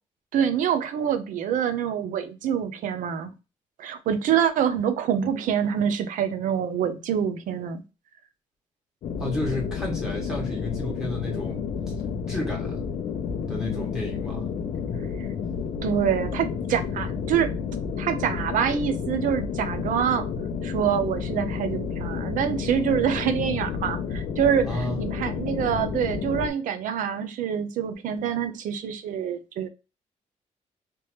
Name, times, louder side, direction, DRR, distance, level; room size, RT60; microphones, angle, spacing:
voice 1, 0.3-3.3 3.8-7.8 15.2-15.3 15.8-17.5 18.0-20.3 20.6-29.7, right 8 dB, 85° right, 0.6 m, -26 dB
sound 1, 9.0-26.5, left 6 dB, 70° left, 0.6 m, -31 dB
voice 2, 9.2-11.6 12.3-12.8 13.5-14.5 24.7-25.0, left 1 dB, 5° right, 1.5 m, -31 dB
3.4 x 3.0 x 3.1 m
cardioid pair, 165°, 13 cm